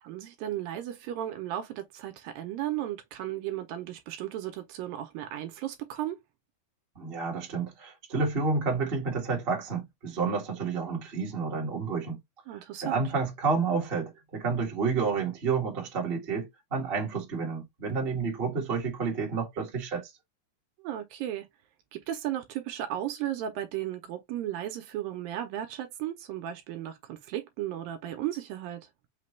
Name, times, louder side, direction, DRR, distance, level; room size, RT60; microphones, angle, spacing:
voice 1, 0.0-6.2 12.5-13.0 20.8-21.5 21.9-28.9, right 12 dB, 75° right, 2.4 m, -35 dB
voice 2, 6.9-12.2 12.5-20.1, right 4 dB, 30° right, 1.1 m, -30 dB
5.9 x 2.3 x 3.1 m
omnidirectional pair, 4.3 m